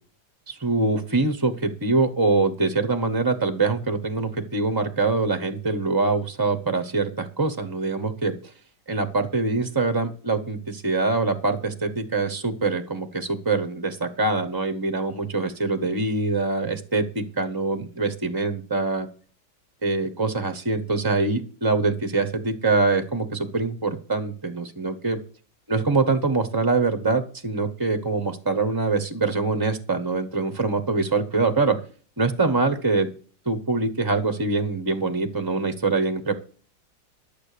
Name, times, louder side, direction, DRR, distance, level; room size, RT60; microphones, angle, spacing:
voice 1, 0.5-8.3 8.9-19.1 19.8-25.2 25.7-31.8 32.2-33.1 33.4-36.3, right 3 dB, 15° right, 9 dB, 0.8 m, -24 dB
12.0 x 7.3 x 6.8 m, 0.42 s
omnidirectional pair, 2.0 m